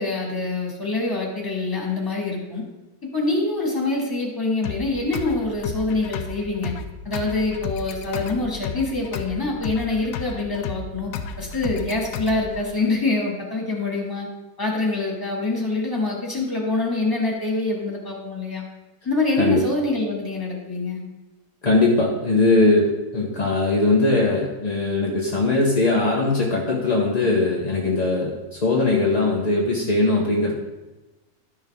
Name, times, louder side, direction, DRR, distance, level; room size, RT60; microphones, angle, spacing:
voice 1, 0.0-2.6 3.1-6.7 7.1-11.1 11.4-14.3 14.6-18.6 19.0-21.0, left 2 dB, 10° left, -2 dB, 1.8 m, -25 dB
sound 1, 4.6-12.6, left 6 dB, 80° left, 1.2 m, -33 dB
voice 2, 21.6-30.5, left 2 dB, 35° left, -3 dB, 0.7 m, -20 dB
12.0 x 6.4 x 3.6 m, 1.1 s
omnidirectional pair, 1.9 m